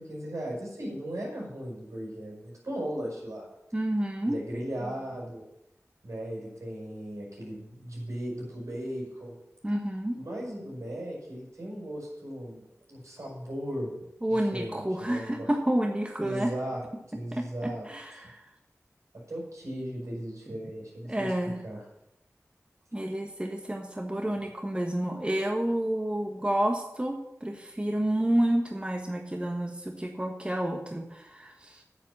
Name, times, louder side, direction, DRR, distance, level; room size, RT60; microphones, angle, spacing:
voice 1, 0.0-3.4 4.2-5.4 6.0-9.3 10.1-12.6 12.9-13.9 14.3-15.5 16.2-16.8 17.1-17.9 18.2-18.3 19.3-21.3 21.6-21.8, equal, 75° right, -2 dB, 5.3 m, -37 dB
voice 2, 3.7-4.4 9.6-10.2 14.2-16.5 17.3-18.4 21.0-21.5 22.9-31.8, right 1 dB, 20° right, 3 dB, 1.3 m, -29 dB
8.8 x 7.5 x 7.3 m, 0.86 s
cardioid pair, 45°, 5 cm